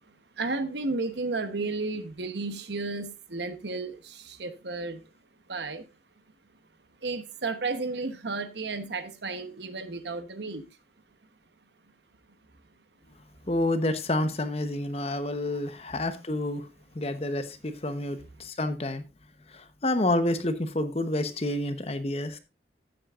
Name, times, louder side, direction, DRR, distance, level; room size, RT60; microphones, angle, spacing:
voice 1, 0.4-5.0 5.5-5.9 7.0-10.6, right 3 dB, 70° right, 1.0 m, -33 dB
voice 2, 13.5-16.7 16.9-19.0 19.5-22.4, left 1 dB, 35° left, 0.9 m, -29 dB
15.0 x 7.7 x 2.4 m
head